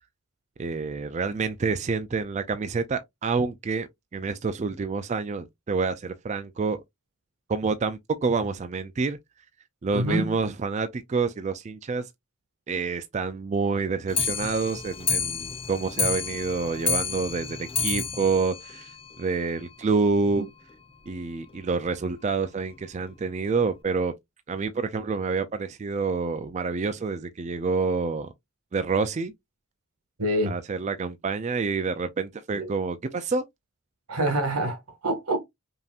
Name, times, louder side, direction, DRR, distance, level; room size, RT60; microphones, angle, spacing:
voice 1, 0.6-6.8 7.5-9.2 9.8-12.1 12.7-18.9 19.2-20.5 21.1-24.1 24.5-28.3 28.7-29.3 30.5-33.4, right 4 dB, 30° right, 0.3 m, -28 dB
voice 2, 9.9-10.3 30.2-30.5 32.5-32.7 34.1-35.4, right 1 dB, 90° right, 1.7 m, -26 dB
Clock, 14.1-19.6 19.9-20.0 20.3-20.4 20.7-20.8 21.1-21.2 21.9-22.0 22.7-22.8 23.4-23.5, left 5 dB, 25° left, 0.6 m, -30 dB
5.3 x 2.8 x 2.4 m
head